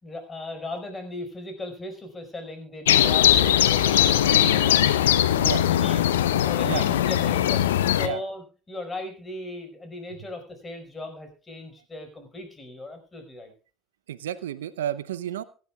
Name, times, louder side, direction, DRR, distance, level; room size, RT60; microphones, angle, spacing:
voice 1, 0.0-5.1 5.4-6.2 6.4-7.6 8.0-13.5, left 2 dB, 20° left, 6 dB, 5.0 m, -37 dB
sound 1, 2.9-8.1, left 11 dB, 75° left, 0.8 m, -20 dB
voice 2, 14.1-15.4, right 11 dB, 75° right, 14 dB, 0.7 m, -31 dB
24.0 x 10.5 x 2.3 m, 0.38 s
figure-of-eight pair, 65°, 0 cm